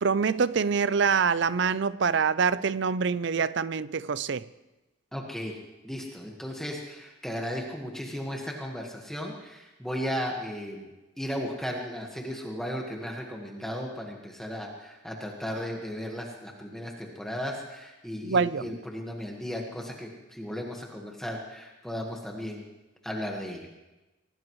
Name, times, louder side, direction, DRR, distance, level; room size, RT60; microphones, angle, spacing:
voice 1, 0.0-4.4 18.2-18.8, right 5 dB, 55° right, 0.5 m, -25 dB
voice 2, 5.1-5.6 5.8-10.9 11.2-22.6 23.0-23.7, equal, ahead, 1.5 m, -35 dB
24.5 x 18.0 x 3.2 m
head